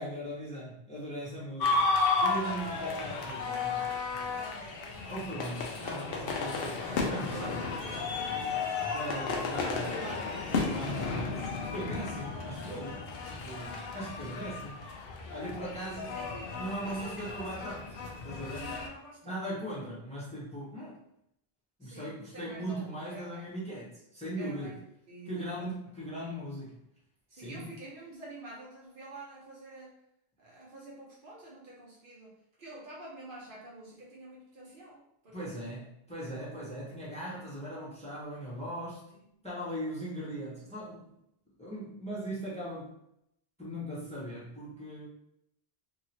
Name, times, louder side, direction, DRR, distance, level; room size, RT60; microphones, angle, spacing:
voice 1, 0.0-1.9 2.2-3.9 5.1-7.6 8.9-10.2 10.5-13.0 13.3-14.8 15.3-16.2 16.5-17.9 18.2-18.7 19.2-21.0 21.8-24.8 25.3-26.8 27.3-27.7 35.3-39.0 39.4-41.1 41.6-42.9 43.6-45.1, right 1 dB, 5° left, -7 dB, 0.9 m, -39 dB
sound 1, 1.6-18.9, left 4 dB, 70° left, 0.8 m, -33 dB
voice 2, 4.3-5.1 7.3-8.9 9.8-10.8 12.1-12.3 13.8-14.5 15.8-16.5 16.8-17.5 18.5-19.5 20.7-20.9 21.8-23.5 24.4-25.6 27.3-29.9 30.4-32.3 32.6-35.6, right 2 dB, 60° right, -5 dB, 0.9 m, -48 dB
2.9 x 2.9 x 2.8 m, 0.78 s
omnidirectional pair, 1.1 m